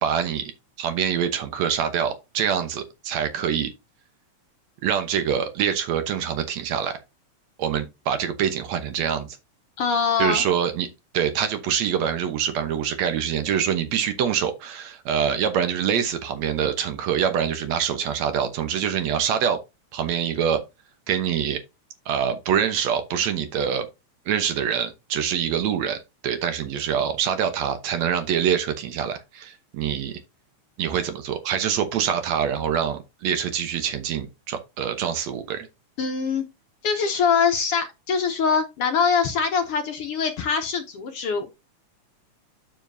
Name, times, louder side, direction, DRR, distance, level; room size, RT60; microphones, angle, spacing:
voice 1, 0.0-0.5 0.8-3.7 4.8-7.0 7.6-9.4 10.2-10.9 11.1-19.6 19.9-20.6 21.1-21.6 22.1-23.9 24.3-30.2 30.8-35.7, right 8 dB, 70° right, 2.2 m, -25 dB
voice 2, 9.8-10.4 36.0-36.4 36.8-41.6, left 6 dB, 65° left, 1.6 m, -23 dB
9.1 x 7.1 x 2.7 m
omnidirectional pair, 3.4 m